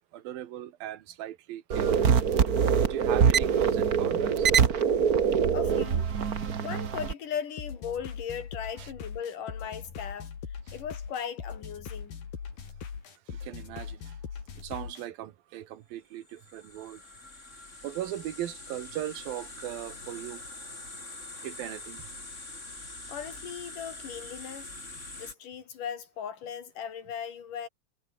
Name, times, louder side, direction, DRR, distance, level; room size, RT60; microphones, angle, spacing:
voice 1, 0.1-2.2 2.8-4.5 6.2-6.3 8.8-8.9 13.3-14.2 14.6-17.0 17.8-20.4 21.4-22.1, right 13 dB, 85° right, 3.2 m, -38 dB
sound 1, 1.7-7.1, right 7 dB, 55° right, 1.0 m, -24 dB
voice 2, 5.5-6.1 6.6-10.3 10.7-12.1 23.1-24.7 25.1-27.7, left 8 dB, 65° left, 4.2 m, -38 dB
sound 2, 7.6-15.1, left 6 dB, 85° left, 5.6 m, -40 dB
sound 3, 16.2-25.3, left 2 dB, 20° left, 5.2 m, -44 dB
omnidirectional pair, 4.0 m